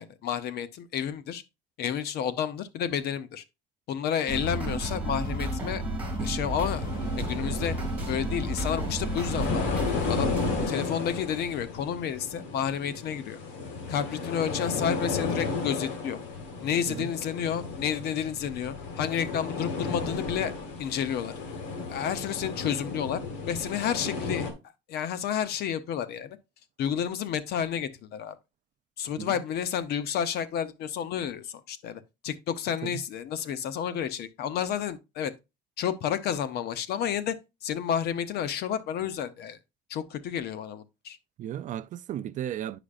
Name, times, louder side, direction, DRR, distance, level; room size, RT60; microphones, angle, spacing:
voice 1, 0.0-1.4 1.8-3.4 3.9-5.8 6.2-6.8 7.2-7.7 8.1-10.3 10.7-13.4 13.9-16.2 16.6-20.5 20.8-21.3 21.9-23.2 23.5-24.5 24.9-26.4 26.8-28.4 29.0-35.3 35.8-37.3 37.6-39.6 39.9-41.2, left 8 dB, 60° left, 0.7 m, -30 dB
sound 1, 4.3-10.7, right 1 dB, 10° right, 2.5 m, -31 dB
sound 2, 6.7-24.5, left 4 dB, 90° left, 2.0 m, -34 dB
voice 2, 41.4-42.8, right 11 dB, 45° right, 0.4 m, -35 dB
9.6 x 5.0 x 2.4 m
cardioid pair, 145°, 19 cm